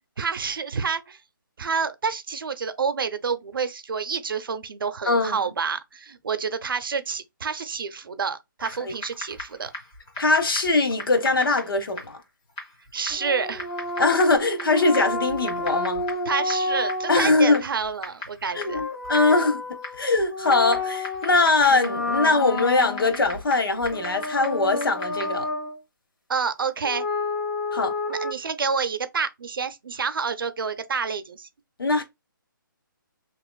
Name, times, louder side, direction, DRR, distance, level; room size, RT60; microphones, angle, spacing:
voice 1, 0.2-1.2 1.6-9.7 12.9-13.7 14.7-14.8 16.3-18.8 26.3-27.0 28.1-31.5, right 5 dB, 75° right, 0.6 m, -28 dB
voice 2, 5.1-5.4 8.8-8.9 10.2-12.2 14.0-16.1 17.1-17.6 18.5-19.6 20.0-25.5 27.7-27.9 31.8-32.0, left 3 dB, 80° left, 1.0 m, -21 dB
Typing, 8.6-25.5, left 1 dB, 15° left, 0.5 m, -40 dB
sound 1, 13.1-17.4 18.5-21.4 21.7-23.3 23.9-25.8 26.8-28.3, left 2 dB, 60° left, 1.2 m, -30 dB
3.0 x 2.9 x 2.2 m
hypercardioid pair, 170°, 12 cm